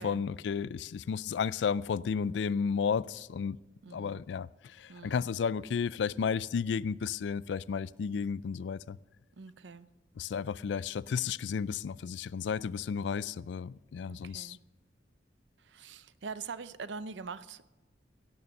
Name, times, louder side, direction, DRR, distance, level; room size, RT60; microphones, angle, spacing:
voice 1, 0.0-3.6 3.9-9.0 10.2-14.6, left 6 dB, 75° left, 0.3 m, -33 dB
voice 2, 3.8-4.2 4.9-5.3 9.3-9.9 14.1-14.6 15.6-17.6, right 5 dB, 80° right, 0.6 m, -44 dB
16.5 x 6.9 x 6.5 m
head